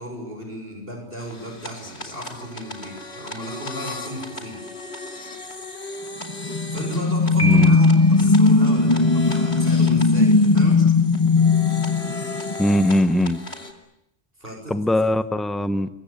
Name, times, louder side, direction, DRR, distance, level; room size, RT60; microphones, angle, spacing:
voice 1, 0.0-4.6 6.7-10.9 14.4-14.8, equal, 55° right, 3 dB, 7.2 m, -35 dB
sound 1, 1.2-13.7, left 2 dB, 70° left, 3.3 m, -37 dB
sound 2, 6.3-12.8, left 3 dB, 25° left, 1.3 m, -18 dB
Piano, 7.4-8.4, right 2 dB, 90° left, 2.7 m, -30 dB
voice 2, 7.4-7.8 12.6-13.4 14.7-15.9, left 1 dB, ahead, 12 dB, 1.2 m, -20 dB
29.0 x 23.5 x 8.7 m, 0.81 s
omnidirectional pair, 1.1 m